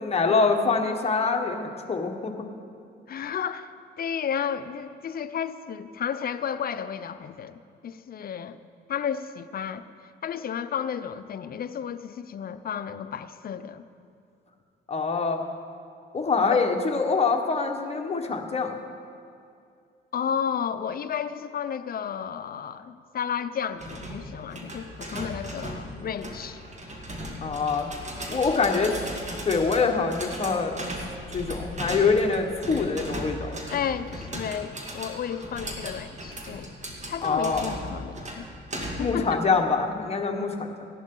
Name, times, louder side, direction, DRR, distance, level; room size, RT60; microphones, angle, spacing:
voice 1, 0.0-2.3 14.9-15.4 16.1-18.8 27.4-27.9 28.3-29.0 29.4-30.7 31.3-33.5 37.2-37.6 39.0-40.9, left 4 dB, 30° left, 3 dB, 1.3 m, -25 dB
voice 2, 3.1-3.7 4.0-8.6 8.9-9.8 10.2-13.8 16.4-16.6 20.1-26.6 33.7-36.7 37.1-38.5 38.9-39.4, left 8 dB, 50° left, 11 dB, 0.6 m, -32 dB
sound 1, 23.8-39.2, equal, 35° right, 2.2 m, -37 dB
16.0 x 11.0 x 3.8 m, 2.4 s
cardioid pair, 90°, 20 cm